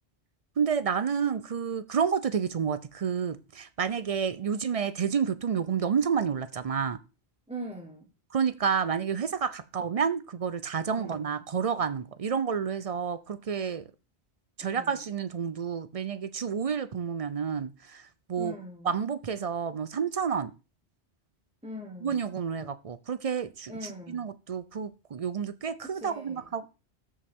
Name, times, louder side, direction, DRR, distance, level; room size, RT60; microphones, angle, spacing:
voice 1, 0.6-7.0 8.3-13.8 14.6-18.5 18.8-20.5 22.0-26.6, right 7 dB, 50° right, 0.4 m, -30 dB
voice 2, 7.5-8.1 10.9-11.4 14.6-15.1 18.4-18.9 21.6-22.2 23.7-24.3 25.8-26.7, equal, 5° right, 1.2 m, -42 dB
13.5 x 5.4 x 3.6 m
omnidirectional pair, 1.1 m